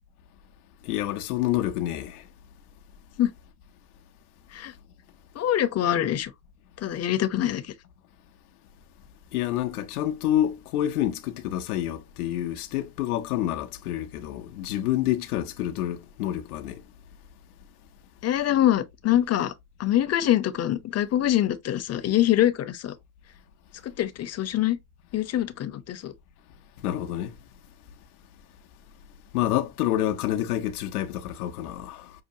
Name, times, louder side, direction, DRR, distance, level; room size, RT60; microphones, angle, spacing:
voice 1, 0.8-2.2 9.3-16.8 26.8-27.3 29.3-32.1, left 12 dB, 85° left, 0.7 m, -28 dB
voice 2, 5.4-6.3 6.8-7.6 18.2-19.5 19.8-22.9 23.8-24.8 25.1-26.1, left 12 dB, 35° left, 0.7 m, -24 dB
5.6 x 2.2 x 2.7 m
hypercardioid pair, 80°, 44 cm